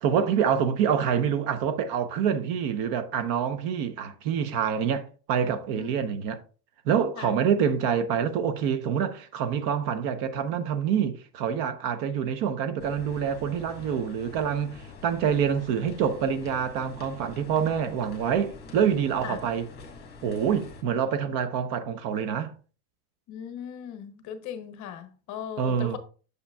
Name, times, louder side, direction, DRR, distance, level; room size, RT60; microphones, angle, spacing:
voice 1, 0.0-6.4 6.9-19.7 20.2-22.5 25.6-26.0, right 7 dB, 45° right, 0.7 m, -26 dB
sound 1, 12.8-20.8, left 3 dB, 20° left, 1.6 m, -46 dB
voice 2, 23.3-26.0, left 9 dB, 40° left, 0.8 m, -38 dB
7.0 x 6.6 x 2.2 m
supercardioid pair, 140°, 48 cm